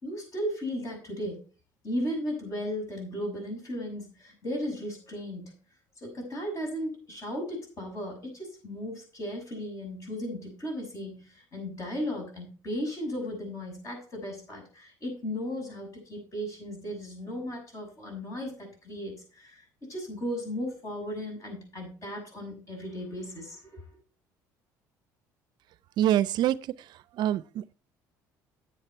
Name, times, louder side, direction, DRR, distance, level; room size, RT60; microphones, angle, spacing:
voice 1, 0.0-1.4 1.8-5.5 6.0-24.0, equal, 40° left, 6.6 m, -36 dB
voice 2, 26.0-27.7, right 12 dB, 65° right, 0.5 m, -26 dB
9.8 x 7.9 x 4.5 m
supercardioid pair, 95°, 8 cm